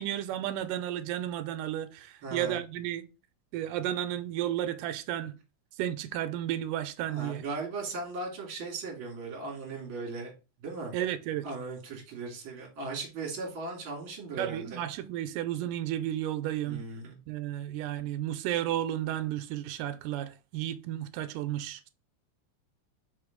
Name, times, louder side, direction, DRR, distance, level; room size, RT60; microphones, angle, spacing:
voice 1, 0.0-3.1 3.5-5.3 5.8-7.4 10.9-11.5 14.4-16.8 17.3-21.9, right 12 dB, 85° right, 2.2 m, -33 dB
voice 2, 2.2-2.6 7.1-10.3 10.6-10.9 11.4-14.8 16.6-17.2, right 3 dB, 45° right, 2.5 m, -38 dB
5.3 x 3.6 x 5.0 m
omnidirectional pair, 3.7 m